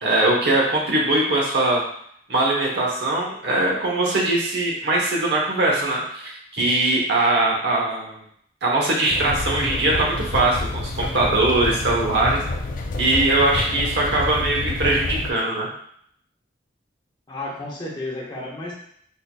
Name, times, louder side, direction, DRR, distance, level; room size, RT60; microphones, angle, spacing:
voice 1, 0.0-1.8 2.3-8.2 8.6-12.4 13.0-15.7, right 2 dB, 60° right, -3 dB, 0.9 m, -21 dB
sound 1, 9.1-15.3, left 2 dB, 45° left, 0.4 m, -28 dB
voice 2, 17.3-18.7, left 2 dB, 25° left, -4 dB, 0.8 m, -32 dB
4.4 x 2.7 x 2.2 m, 0.66 s
head